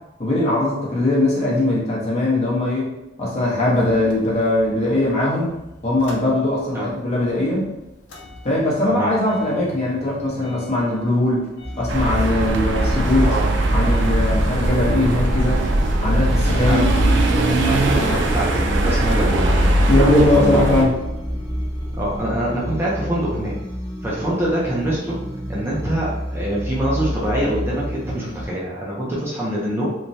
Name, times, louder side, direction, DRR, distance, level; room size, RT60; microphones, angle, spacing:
voice 1, 0.2-5.5 5.8-7.7 8.4-11.5 11.8-13.3 13.7-15.6 16.0-16.8 19.9-21.0, left 1 dB, 35° left, -6 dB, 0.9 m, -20 dB
Motor vehicle (road) / Engine starting / Idling, 3.7-6.9 7.2-22.2, right 1 dB, 70° left, 0.6 m, -30 dB
sound 1, 11.6-28.5, equal, 85° right, 0.8 m, -29 dB
sound 2, 11.9-20.9, right 1 dB, 70° right, 0.4 m, -20 dB
voice 2, 13.2-13.7 16.7-16.9 17.7-19.5 20.2-20.8 22.0-23.5 24.0-25.2 25.5-29.8, right 1 dB, 15° right, -6 dB, 0.5 m, -24 dB
3.1 x 2.2 x 2.6 m, 0.96 s
head